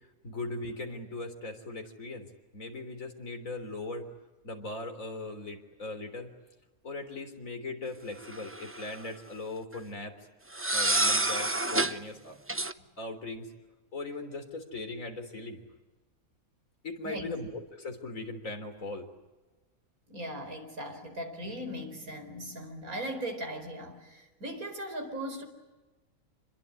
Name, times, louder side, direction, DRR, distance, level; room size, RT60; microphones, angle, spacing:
voice 1, 0.2-2.3 2.5-4.1 4.4-6.3 6.8-10.2 10.7-12.4 13.0-13.5 13.9-15.6 16.8-19.1, left 2 dB, 70° left, 5 dB, 4.0 m, -39 dB
sound 1, 8.3-9.0 10.5-12.0 12.5-12.7, right 2 dB, 15° right, 0.6 m, -28 dB
voice 2, 17.0-17.4 20.1-25.4, right 1 dB, 85° right, 5 dB, 5.0 m, -38 dB
27.0 x 21.5 x 9.8 m, 1.2 s
omnidirectional pair, 1.5 m